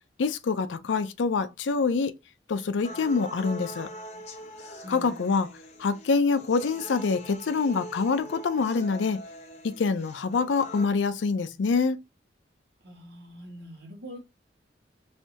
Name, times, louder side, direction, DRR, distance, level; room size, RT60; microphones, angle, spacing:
voice 1, 0.2-2.1 2.5-3.9 4.9-5.5 5.8-9.2 9.6-12.0, left 4 dB, 85° left, 0.4 m, -25 dB
sound 1, 2.8-10.8, equal, 40° left, 0.7 m, -43 dB
voice 2, 4.8-5.2 12.8-14.2, equal, 65° right, 1.3 m, -43 dB
3.3 x 2.7 x 2.7 m
head